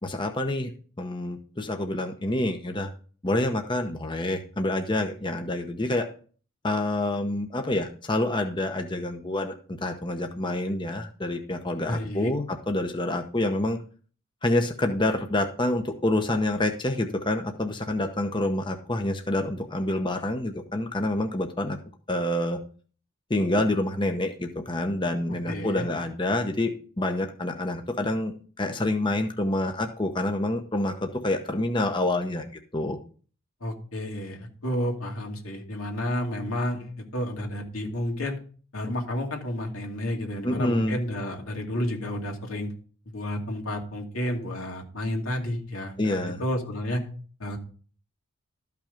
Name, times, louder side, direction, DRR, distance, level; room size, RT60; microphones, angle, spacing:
voice 1, 0.0-0.7 1.0-2.9 3.2-6.1 6.6-13.8 14.4-21.8 22.1-22.6 23.3-28.3 28.6-32.5 32.7-33.0 40.4-41.0 46.0-46.4, left 1 dB, 20° left, 5 dB, 0.9 m, -27 dB
voice 2, 11.9-12.3 25.5-25.9 33.6-38.4 38.7-42.7 43.1-47.0 47.4-47.6, left 1 dB, 90° left, 1 dB, 2.5 m, -31 dB
13.0 x 5.9 x 5.2 m, 0.42 s
head